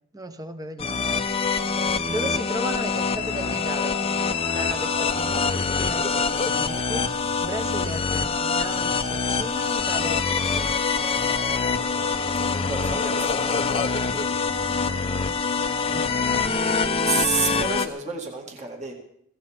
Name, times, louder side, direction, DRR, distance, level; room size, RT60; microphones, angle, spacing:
voice 1, 0.1-1.1 2.1-4.0 4.5-10.7 15.9-16.1, right 1 dB, 15° right, 8 dB, 1.0 m, -35 dB
sound 1, 0.8-17.9, left 5 dB, 25° left, 0.7 m, -25 dB
voice 2, 12.2-13.6 17.0-18.9, right 5 dB, 35° right, 1 dB, 2.1 m, -30 dB
23.0 x 16.0 x 3.6 m, 0.70 s
head